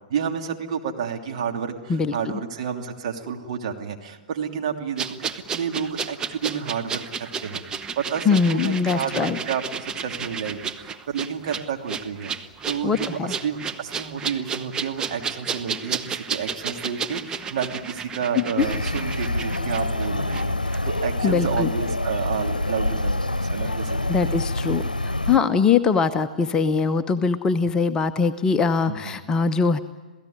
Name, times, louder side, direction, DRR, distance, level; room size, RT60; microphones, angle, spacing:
voice 1, 0.1-7.6 8.0-12.3 12.7-24.4 28.9-29.1, right 7 dB, 50° right, 3 dB, 2.9 m, -30 dB
sound 1, 5.0-20.5 20.7-20.8, right 6 dB, 15° right, 1.0 m, -32 dB
voice 2, 8.2-9.4 12.8-13.3 18.4-18.7 21.2-21.7 24.1-29.8, left 5 dB, 15° left, 9 dB, 0.9 m, -22 dB
sound 2, 18.6-25.4, left 1 dB, 85° left, 0.8 m, -26 dB
27.5 x 17.5 x 9.6 m, 1.3 s
figure-of-eight pair, 110°, 4 cm